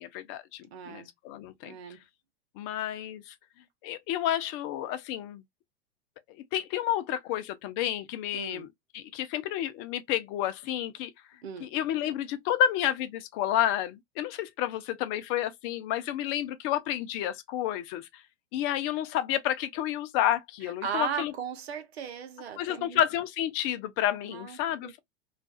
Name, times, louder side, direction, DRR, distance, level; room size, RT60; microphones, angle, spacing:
voice 1, 0.0-1.7 2.6-3.3 3.8-5.4 6.5-8.7 8.9-11.1 11.6-18.2 18.5-21.3 22.6-25.0, left 11 dB, 40° left, 0.4 m, -30 dB
voice 2, 0.7-1.1 1.6-2.0 8.3-8.7 11.4-11.7 20.6-23.0 24.2-24.9, right 8 dB, 70° right, 0.8 m, -37 dB
2.4 x 2.3 x 2.2 m
hypercardioid pair, 95°, 32 cm